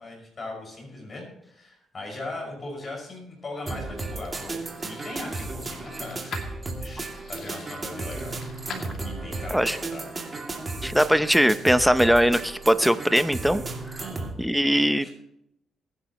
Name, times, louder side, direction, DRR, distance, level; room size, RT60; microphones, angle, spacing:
voice 1, 0.0-6.4 6.8-8.4 9.0-10.0 14.0-14.3 14.9-15.1, left 2 dB, 35° left, 0 dB, 5.9 m, -39 dB
sound 1, 3.5-9.5, left 5 dB, 60° left, 2.5 m, -45 dB
sound 2, 3.7-14.3, right 3 dB, 30° right, 2.5 m, -34 dB
voice 2, 10.8-13.6 13.9-14.0 14.4-15.1, equal, ahead, 12 dB, 0.7 m, -21 dB
22.0 x 9.9 x 3.1 m, 0.80 s
cardioid pair, 90°, 0 cm